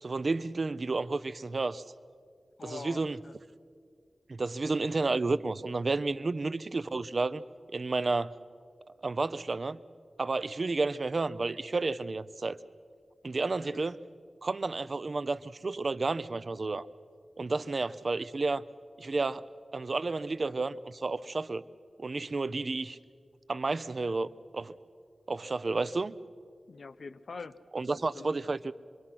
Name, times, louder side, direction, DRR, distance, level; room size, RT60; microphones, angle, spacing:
voice 1, 0.0-1.8 2.6-3.2 4.3-7.4 7.7-8.3 9.0-9.8 10.2-12.6 13.2-14.0 14.4-16.9 17.4-18.6 19.0-19.4 19.7-21.6 22.0-23.0 23.5-24.7 25.3-26.1 27.7-28.7, right 3 dB, 50° right, 14 dB, 0.6 m, -31 dB
voice 2, 2.6-3.4 13.6-13.8 17.7-17.9 26.7-28.4, left 4 dB, 70° left, 12 dB, 0.8 m, -45 dB
26.5 x 22.5 x 5.9 m, 2.2 s
wide cardioid pair, 105°, 0 cm